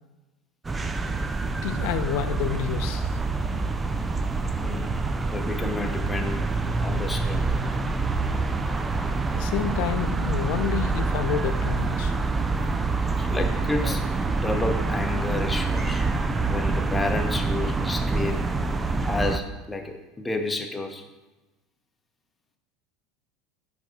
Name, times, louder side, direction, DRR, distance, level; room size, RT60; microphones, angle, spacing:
sound 1, 0.6-19.4, right 3 dB, 15° right, 0.4 m, -26 dB
voice 1, 1.6-3.2 9.3-12.1, left 11 dB, 55° left, 10 dB, 0.5 m, -29 dB
voice 2, 4.6-5.0 5.2-6.5 6.8-7.5 13.2-16.1 16.4-18.5 19.0-21.0, left 2 dB, 10° left, 4 dB, 0.9 m, -31 dB
10.5 x 3.5 x 4.1 m, 1.1 s
figure-of-eight pair, 75°, 0 cm